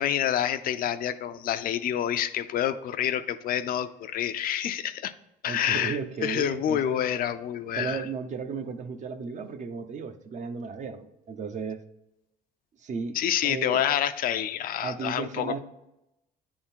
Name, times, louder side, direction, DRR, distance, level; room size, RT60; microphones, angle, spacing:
voice 1, 0.0-5.1 5.4-8.0 13.1-15.6, left 10 dB, 60° left, 11 dB, 0.5 m, -28 dB
voice 2, 5.5-7.0 7.8-11.8 12.8-13.2 13.4-13.8 14.8-15.6, right 5 dB, 45° right, 8 dB, 0.7 m, -34 dB
8.6 x 3.7 x 4.4 m, 0.88 s
cardioid pair, 110°, 17 cm